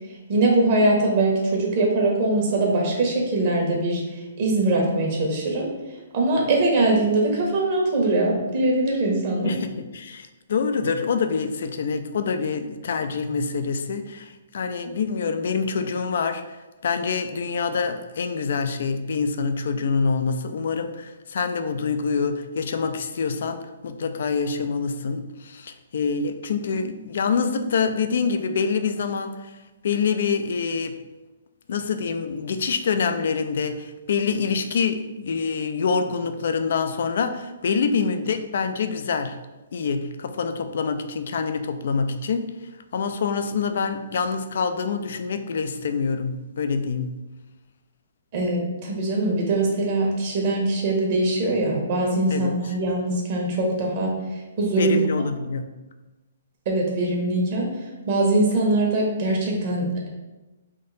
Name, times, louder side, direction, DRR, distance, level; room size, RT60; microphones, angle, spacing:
voice 1, 0.3-5.7 6.1-9.5 48.3-54.1 54.6-55.0 56.6-57.7 58.1-60.1, right 2 dB, 45° right, -1 dB, 1.2 m, -22 dB
voice 2, 9.4-16.6 16.8-29.5 29.8-30.9 31.7-39.4 39.7-42.4 42.9-47.1 52.3-52.5 54.7-55.7, left 5 dB, 65° left, 8 dB, 0.4 m, -26 dB
3.6 x 2.6 x 4.0 m, 1.1 s
hypercardioid pair, 140°, 0 cm